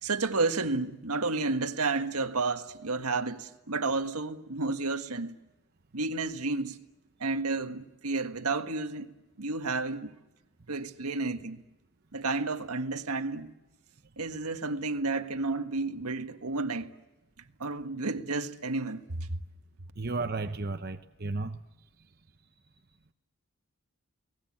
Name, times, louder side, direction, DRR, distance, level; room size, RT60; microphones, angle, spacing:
voice 1, 0.0-5.3 5.9-6.8 7.2-9.1 9.4-10.1 10.7-11.6 12.1-13.5 14.2-16.9 17.6-19.4, right 3 dB, 90° right, 1.6 m, -31 dB
voice 2, 20.0-21.6, right 3 dB, 45° right, 0.8 m, -33 dB
30.0 x 19.5 x 8.7 m
head